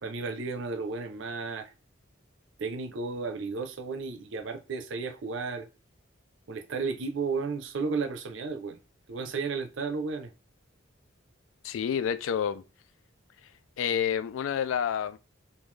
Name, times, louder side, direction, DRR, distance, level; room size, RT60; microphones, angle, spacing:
voice 1, 0.0-1.7 2.6-5.7 6.5-8.8 9.1-10.3, right 4 dB, 70° right, 0.5 m, -33 dB
voice 2, 11.6-12.6 13.8-15.2, left 8 dB, 80° left, 0.3 m, -29 dB
3.6 x 2.5 x 3.2 m
head